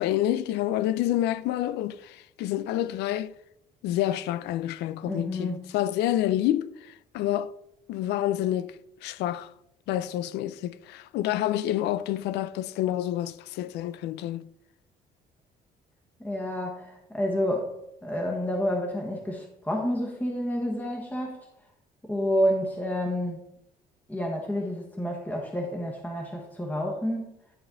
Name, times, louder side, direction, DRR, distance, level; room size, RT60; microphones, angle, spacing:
voice 1, 0.0-3.3 3.8-7.5 7.9-8.7 9.0-9.5 9.9-14.5, left 13 dB, 85° left, 0.4 m, -28 dB
voice 2, 5.1-5.7 16.2-17.7 18.0-21.4 22.0-23.4 24.1-27.4, equal, 10° left, 1.3 m, -29 dB
11.5 x 4.3 x 3.8 m
cardioid pair, 110°, 17 cm